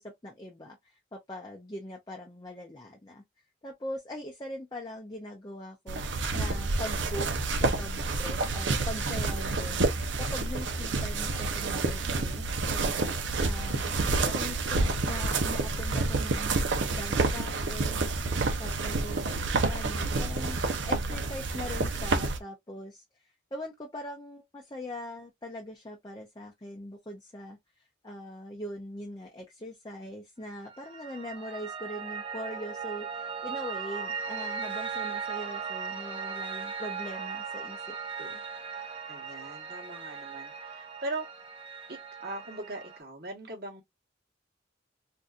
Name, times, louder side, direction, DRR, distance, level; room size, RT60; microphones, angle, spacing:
voice 1, 0.0-3.2 3.6-6.0 6.3-7.3 7.6-13.0 13.4-18.1 18.6-19.2 19.7-20.6 20.9-38.4, left 1 dB, 20° left, 0.5 m, -41 dB
sound 1, 5.9-22.4, right 3 dB, 85° right, 0.7 m, -29 dB
voice 2, 19.0-19.6 39.1-41.3 41.9-43.8, right 2 dB, 55° right, 1.2 m, -40 dB
Piano, 30.6-43.0, right 6 dB, 30° right, 0.7 m, -38 dB
3.7 x 2.6 x 2.3 m
head